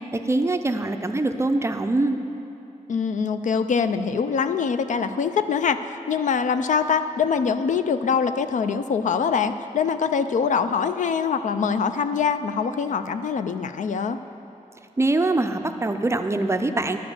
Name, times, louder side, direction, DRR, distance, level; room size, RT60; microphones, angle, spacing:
voice 1, 0.1-2.3 15.0-17.0, right 2 dB, 20° right, 7 dB, 0.4 m, -23 dB
voice 2, 2.9-5.8 6.1-14.2, left 6 dB, 65° left, 10 dB, 0.4 m, -23 dB
11.5 x 5.1 x 7.1 m, 2.9 s
wide cardioid pair, 130°, 14 cm